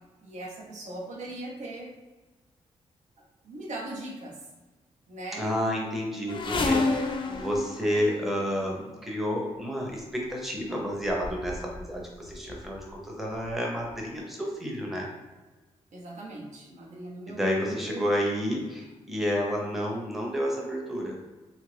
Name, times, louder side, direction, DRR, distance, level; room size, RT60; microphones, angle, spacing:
voice 1, 0.2-1.9 3.4-4.4 5.1-5.5 15.9-17.4 17.7-18.0, right 2 dB, 80° right, -2 dB, 0.8 m, -39 dB
voice 2, 5.4-15.1 17.3-21.2, equal, ahead, -2 dB, 0.6 m, -30 dB
sound 1, 6.3-8.8 9.7-10.0 10.7-10.8 11.0-11.9 12.2-12.8 13.5-13.6 13.9-14.0, left 3 dB, 40° left, 0.4 m, -30 dB
2.9 x 2.4 x 3.2 m, 1.2 s
wide cardioid pair, 115°, 12 cm